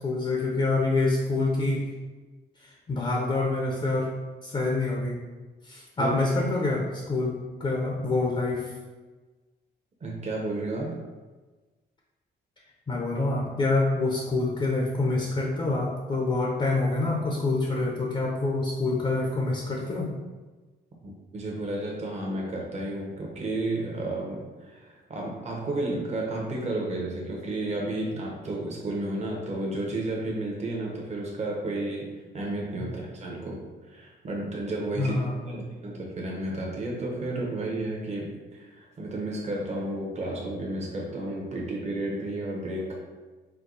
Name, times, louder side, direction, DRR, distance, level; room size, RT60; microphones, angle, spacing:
voice 1, 0.0-1.8 2.6-4.1 4.4-5.2 5.6-8.7 12.9-20.1 32.8-32.9 35.0-35.6, left 2 dB, 25° left, -1 dB, 0.7 m, -26 dB
voice 2, 10.0-11.0 21.0-35.2 35.5-42.9, right 2 dB, 35° right, -2 dB, 0.9 m, -32 dB
4.5 x 2.2 x 3.9 m, 1.3 s
cardioid pair, 90°, 20 cm